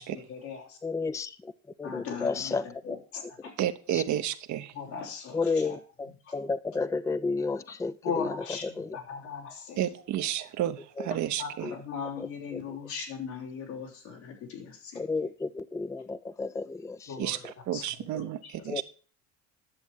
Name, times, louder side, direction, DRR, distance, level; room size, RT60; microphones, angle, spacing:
voice 1, 0.0-0.8 1.8-2.6 2.8-3.5 4.7-5.8 6.3-6.4 8.0-10.0 11.3-15.0 17.1-17.8 18.1-18.7, left 6 dB, 85° left, -2 dB, 3.4 m, -39 dB
voice 2, 0.8-1.5 1.8-3.0 3.4-3.5 3.9-4.0 5.3-9.0 11.0-11.1 11.6-11.8 12.2-12.8 14.9-17.3 18.7-18.8, left 4 dB, 10° left, 14 dB, 0.5 m, -32 dB
voice 3, 3.6-4.7 9.8-11.7 17.2-18.8, right 12 dB, 60° right, 9 dB, 1.0 m, -31 dB
10.5 x 7.1 x 4.6 m, 0.39 s
supercardioid pair, 75°, 33 cm